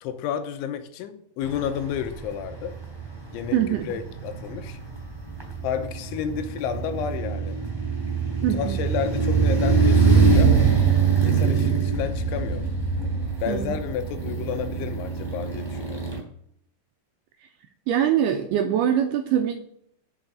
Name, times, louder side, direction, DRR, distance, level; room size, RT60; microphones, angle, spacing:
voice 1, 0.0-2.8 3.3-4.8 5.6-7.6 8.5-10.5 11.2-12.6 13.4-16.1, left 8 dB, 85° left, 9 dB, 3.3 m, -31 dB
sound 1, 1.4-16.2, right 5 dB, 5° right, 2.6 m, -24 dB
voice 2, 3.5-3.9 8.4-8.8 13.5-13.7 17.9-19.5, right 10 dB, 85° right, 4 dB, 2.3 m, -23 dB
8.1 x 7.1 x 8.0 m, 0.72 s
omnidirectional pair, 5.4 m